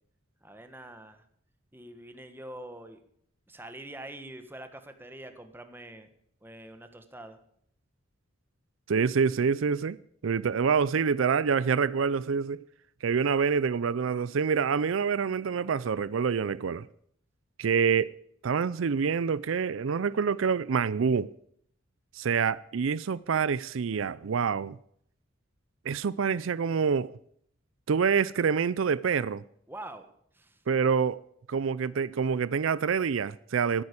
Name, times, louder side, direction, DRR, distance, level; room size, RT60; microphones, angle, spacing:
voice 1, 0.4-1.2 1.7-3.0 3.5-6.1 6.4-7.4 29.7-30.0 30.3-30.6, right 1 dB, 10° right, 1.4 m, -45 dB
voice 2, 8.9-10.0 10.2-12.6 13.0-16.9 17.6-18.1 18.4-21.3 22.1-24.8 25.8-27.1 27.9-29.4 30.7-31.2 31.5-33.8, right 6 dB, 75° right, 0.5 m, -26 dB
14.5 x 8.8 x 8.4 m
head